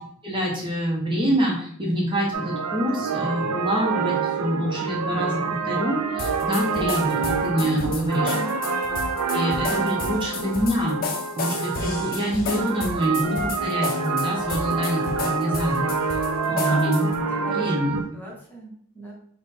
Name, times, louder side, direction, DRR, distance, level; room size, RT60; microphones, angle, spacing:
voice 1, 0.2-8.3 9.3-11.1 11.4-17.1 17.5-18.0, equal, 20° right, -3 dB, 0.8 m, -26 dB
sound 1, 2.3-18.0, right 5 dB, 80° right, 0.5 m, -27 dB
sound 2, 6.2-17.2, left 4 dB, 40° left, 0.5 m, -32 dB
voice 2, 8.3-8.6 16.5-16.9 17.3-19.1, right 1 dB, 10° left, -4 dB, 0.9 m, -37 dB
3.7 x 2.1 x 4.2 m, 0.63 s
head